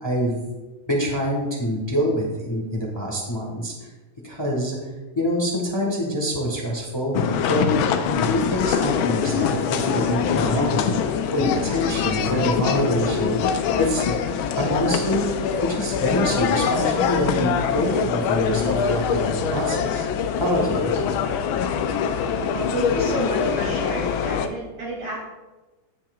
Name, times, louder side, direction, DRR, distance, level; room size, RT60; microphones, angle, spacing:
voice 1, 0.0-0.4 0.9-3.7 4.2-4.8 5.1-7.1 7.5-10.9 11.3-13.4 13.8-14.2 14.6-15.3 15.6-20.1 20.4-20.9, equal, 15° left, -2 dB, 1.2 m, -25 dB
sound 1, 7.1-24.5, left 7 dB, 90° left, 1.4 m, -23 dB
voice 2, 22.5-25.2, right 1 dB, 85° right, -6 dB, 3.9 m, -30 dB
16.0 x 5.7 x 2.4 m, 1.2 s
omnidirectional pair, 2.2 m